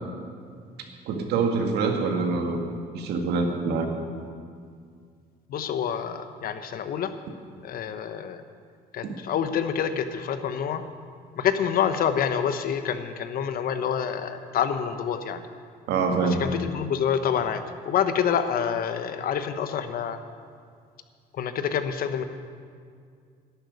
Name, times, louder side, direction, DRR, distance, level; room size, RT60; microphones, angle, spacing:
voice 1, 1.1-2.7 2.9-3.9 15.9-16.4, right 4 dB, 75° right, 3 dB, 1.9 m, -25 dB
voice 2, 5.5-7.1 7.6-8.4 8.9-10.8 11.4-15.4 16.2-20.2 21.3-22.2, left 8 dB, 60° left, 9 dB, 1.0 m, -27 dB
11.5 x 9.1 x 9.4 m, 2.2 s
cardioid pair, 110°, 17 cm